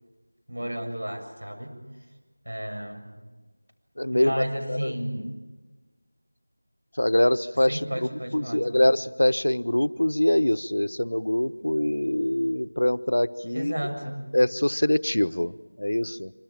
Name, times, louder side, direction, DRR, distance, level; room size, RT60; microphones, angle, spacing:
voice 1, 0.5-1.8 2.5-3.2 4.1-5.4 7.7-8.8 13.5-14.2, equal, 90° right, 5 dB, 7.3 m, -33 dB
voice 2, 4.0-4.9 7.0-13.7 14.3-16.3, left 1 dB, 85° left, 14 dB, 1.0 m, -24 dB
25.5 x 25.5 x 7.5 m, 1.2 s
figure-of-eight pair, 175°, 0 cm